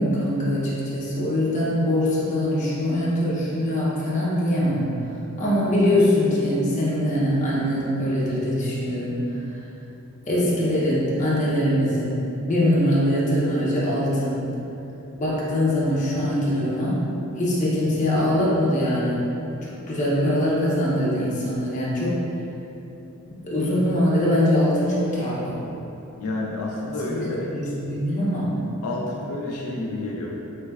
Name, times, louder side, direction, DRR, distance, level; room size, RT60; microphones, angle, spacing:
voice 1, 0.0-4.9 5.4-9.2 10.3-14.5 15.2-17.0 17.4-19.2 19.6-22.2 23.4-25.6 27.2-28.5, left 1 dB, 35° left, -7 dB, 0.7 m, -22 dB
voice 2, 26.2-27.5 28.8-30.3, left 2 dB, 85° left, -2 dB, 0.4 m, -29 dB
3.2 x 3.1 x 2.3 m, 3.0 s
head